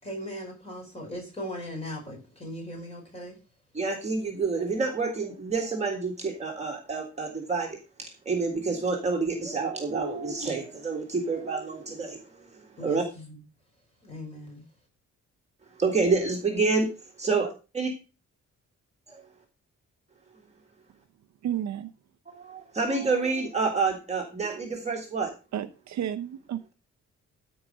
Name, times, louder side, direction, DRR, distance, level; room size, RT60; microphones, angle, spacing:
voice 1, 0.0-3.4 12.8-13.4 14.0-14.6, equal, 20° left, 5.3 m, -38 dB
voice 2, 3.7-7.8 8.3-12.4 12.8-13.0 15.8-16.9 17.2-17.5 17.8-17.9 19.1-19.2 22.3-25.3, right 4 dB, 20° right, 1.9 m, -28 dB
voice 3, 21.4-21.9 25.5-26.6, right 10 dB, 65° right, 0.8 m, -31 dB
14.0 x 5.0 x 5.0 m
wide cardioid pair, 170°, 30 cm